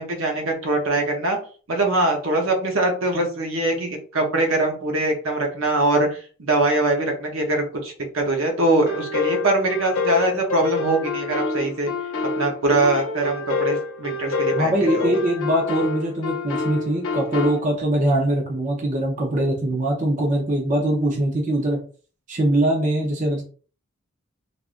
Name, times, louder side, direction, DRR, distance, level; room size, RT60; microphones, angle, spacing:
voice 1, 0.0-1.4 1.7-11.9 12.4-15.1, right 2 dB, 75° right, 2 dB, 0.8 m, -22 dB
sound 1, 8.9-17.6, left 4 dB, 75° left, 0.6 m, -27 dB
voice 2, 14.5-21.8 22.3-23.4, right 1 dB, 35° right, 0 dB, 0.6 m, -22 dB
3.5 x 2.5 x 2.5 m, 0.40 s
head